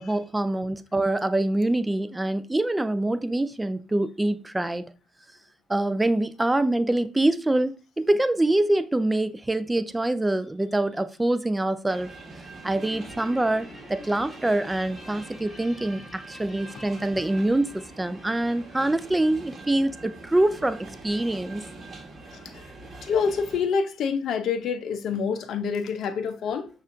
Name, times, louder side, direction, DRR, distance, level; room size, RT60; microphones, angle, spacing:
voice 1, 0.0-4.9 5.7-12.1 12.6-21.6, right 1 dB, 15° right, 0.4 m, -25 dB
sound 1, 11.9-23.6, right 2 dB, 40° right, 1.2 m, -44 dB
Guitar, 12.8-19.4, left 1 dB, 20° left, 1.4 m, -48 dB
voice 2, 23.0-26.7, left 6 dB, 60° left, 0.5 m, -27 dB
6.2 x 2.4 x 2.5 m
hypercardioid pair, 50°, 0 cm